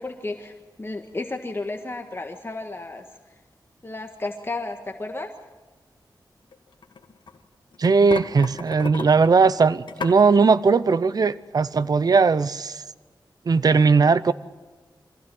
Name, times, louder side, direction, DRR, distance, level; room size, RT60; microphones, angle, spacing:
voice 1, 0.0-3.0 3.8-5.3, left 2 dB, 30° left, 4 dB, 1.7 m, -33 dB
sound 1, 6.5-7.4 7.7-10.2, left 5 dB, 80° left, 1.7 m, -34 dB
voice 2, 7.8-12.8 13.5-14.3, right 4 dB, 55° right, 15 dB, 0.7 m, -18 dB
25.5 x 16.0 x 7.8 m, 1.3 s
wide cardioid pair, 95°, 8 cm